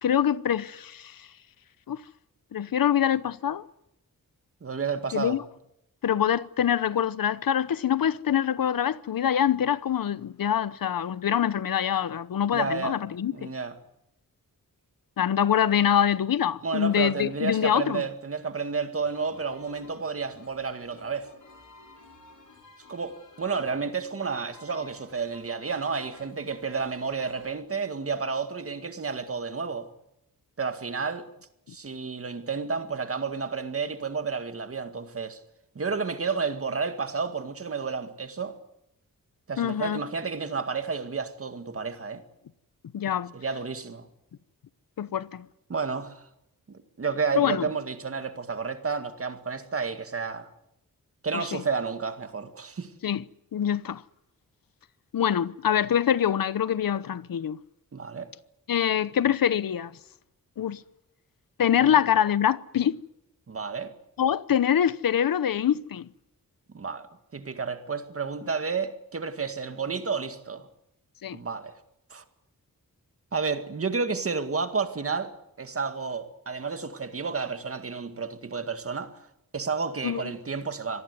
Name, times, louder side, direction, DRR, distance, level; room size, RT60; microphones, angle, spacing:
voice 1, 0.0-1.3 1.9-2.0 2.5-3.7 5.1-5.4 6.0-13.5 15.2-18.0 39.6-40.0 42.9-43.3 45.0-45.5 47.4-47.6 51.3-51.6 53.0-53.2 53.5-54.0 55.1-57.6 58.7-59.9 60.6-60.8 61.6-63.0 64.2-66.1 71.2-71.4 80.0-80.2, left 9 dB, 75° left, 0.9 m, -25 dB
voice 2, 4.6-5.4 12.5-13.0 13.3-13.8 16.6-21.3 22.9-29.9 30.6-31.3 31.7-35.4 35.8-38.6 39.5-42.2 43.3-44.1 45.7-46.3 46.7-50.5 51.2-52.9 57.9-58.3 61.8-62.0 63.5-63.9 66.7-67.1 67.3-70.7 71.3-71.8 72.1-72.2 73.3-75.3 75.6-79.2 79.5-81.0, right 5 dB, 40° right, 1.9 m, -31 dB
sound 1, 19.0-27.5, left 2 dB, 60° left, 6.5 m, -53 dB
26.0 x 19.0 x 9.7 m
wide cardioid pair, 175°, 34 cm